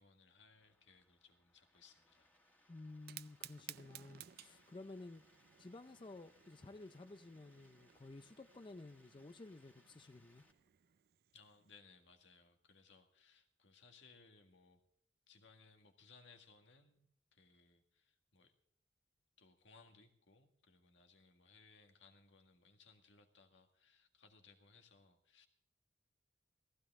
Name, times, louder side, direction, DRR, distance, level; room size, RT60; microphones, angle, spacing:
voice 1, 0.0-2.3 11.3-14.8 15.3-18.5 19.4-25.5, left 4 dB, 80° left, 1.9 m, -65 dB
sound 1, 0.5-10.5, left 1 dB, 10° left, 2.0 m, -72 dB
voice 2, 2.7-5.2 5.6-10.5, left 2 dB, 25° left, 0.5 m, -53 dB
Fire, 2.9-11.8, right 13 dB, 55° right, 0.4 m, -58 dB
16.0 x 15.5 x 3.6 m
head